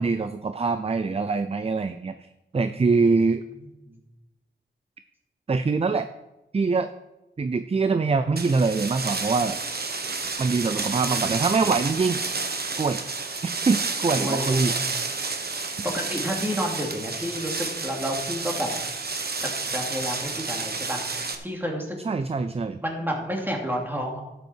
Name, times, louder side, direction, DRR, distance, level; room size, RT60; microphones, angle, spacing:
voice 1, 0.0-2.1 2.5-3.4 5.5-6.1 6.5-6.9 7.4-9.6 10.4-12.2 12.8-13.0 13.4-14.7 22.0-22.8, right 4 dB, 30° right, 11 dB, 0.5 m, -24 dB
sound 1, 8.4-21.4, right 4 dB, 50° right, 1.3 m, -30 dB
voice 2, 14.2-14.9 15.9-18.7 19.7-22.0 22.8-24.2, equal, 10° right, -1 dB, 2.6 m, -30 dB
12.0 x 8.3 x 4.5 m, 0.97 s
wide cardioid pair, 85°, 20 cm